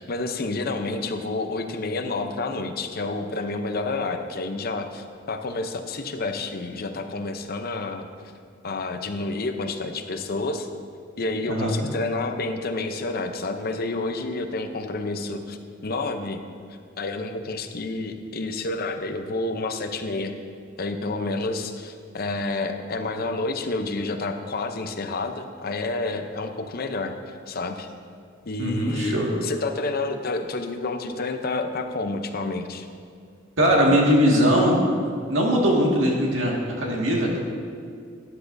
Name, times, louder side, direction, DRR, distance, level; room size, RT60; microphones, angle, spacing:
voice 1, 0.0-8.1 8.6-10.7 11.2-16.4 17.0-20.3 20.8-27.9 28.5-29.2 29.4-32.9, left 3 dB, 50° left, 6 dB, 0.7 m, -29 dB
voice 2, 28.6-29.3 33.6-37.4, equal, 80° right, -2 dB, 1.9 m, -21 dB
12.5 x 11.0 x 2.7 m, 2.2 s
head